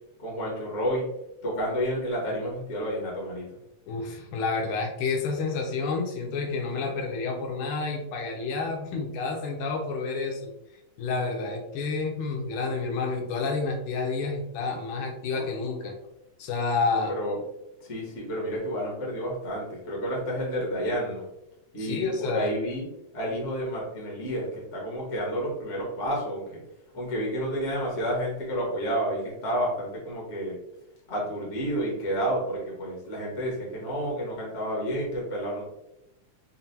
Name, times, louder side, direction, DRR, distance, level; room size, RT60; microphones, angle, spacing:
voice 1, 0.2-1.1 1.4-3.5 16.9-17.4 17.8-21.3 21.7-22.9 23.1-26.6 26.9-30.6 31.1-35.6, equal, 65° left, -4 dB, 0.7 m, -30 dB
voice 2, 3.9-10.5 11.0-16.0 16.4-17.1 21.8-22.5, left 4 dB, 80° left, 1 dB, 2.1 m, -29 dB
5.5 x 2.2 x 2.7 m, 0.89 s
omnidirectional pair, 3.7 m